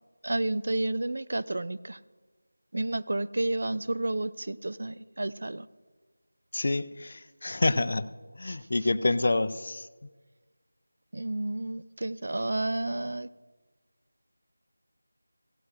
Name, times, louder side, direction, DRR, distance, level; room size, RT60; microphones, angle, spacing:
voice 1, 0.2-2.0 2.7-5.7 8.5-8.6 11.1-13.3, right 2 dB, 50° right, 14 dB, 0.4 m, -31 dB
voice 2, 6.5-8.1 8.4-9.9, left 2 dB, 45° left, 14 dB, 0.5 m, -27 dB
17.0 x 15.5 x 2.5 m, 1.3 s
figure-of-eight pair, 165°, 0 cm